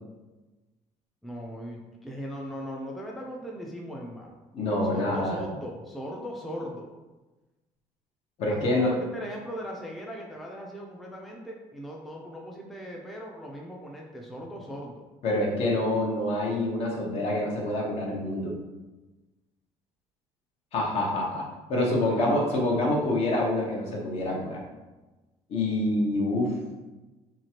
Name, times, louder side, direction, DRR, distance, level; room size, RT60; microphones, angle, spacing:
voice 1, 1.2-4.4 4.9-6.9 8.5-15.1 21.8-22.9, equal, ahead, -1 dB, 0.4 m, -39 dB
voice 2, 4.5-5.4 8.4-8.9 15.2-18.5 20.7-21.4 21.7-24.6 25.5-26.5, left 1 dB, 55° left, -2 dB, 0.8 m, -26 dB
2.9 x 2.4 x 2.9 m, 1.1 s
cardioid pair, 125°, 12 cm